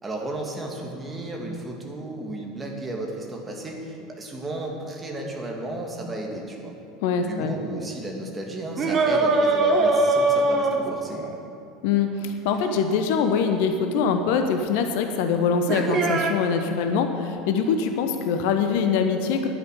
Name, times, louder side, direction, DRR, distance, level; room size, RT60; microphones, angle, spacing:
voice 1, 0.0-6.7 7.2-11.2, right 1 dB, 20° right, 0 dB, 2.5 m, -33 dB
voice 2, 7.0-7.5 11.8-19.5, left 6 dB, 55° left, 6 dB, 0.9 m, -23 dB
sound 1, 8.8-11.3 13.9-14.0 15.7-16.3, right 2 dB, 35° right, 1.5 m, -21 dB
10.5 x 9.6 x 8.4 m, 2.6 s
figure-of-eight pair, 70°, 0 cm